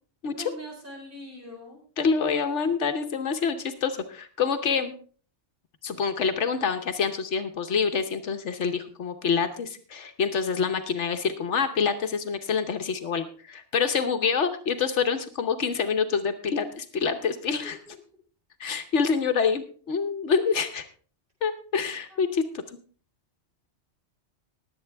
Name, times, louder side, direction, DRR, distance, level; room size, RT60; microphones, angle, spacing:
voice 1, 0.3-1.8 17.6-18.0 18.7-19.0 19.9-20.1 22.1-22.4, left 1 dB, 45° right, -1 dB, 4.8 m, -43 dB
voice 2, 2.0-4.9 5.8-17.8 18.6-20.8 21.4-22.8, left 6 dB, 75° left, 8 dB, 1.2 m, -26 dB
20.5 x 8.1 x 3.4 m, 0.41 s
omnidirectional pair, 1.2 m